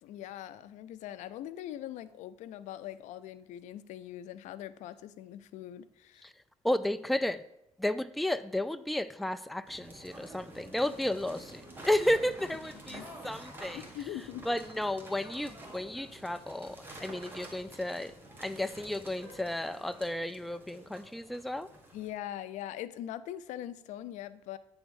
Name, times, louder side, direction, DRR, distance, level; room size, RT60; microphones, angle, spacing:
voice 1, 0.0-6.3 12.7-13.1 13.7-14.5 21.9-24.6, left 12 dB, 85° left, 0.4 m, -42 dB
voice 2, 6.6-7.4 7.8-13.8 14.5-21.7, left 1 dB, ahead, 0.3 m, -33 dB
sound 1, 9.6-22.1, right 1 dB, 15° right, 1.7 m, -49 dB
8.9 x 3.5 x 6.3 m
cardioid pair, 90°, 12 cm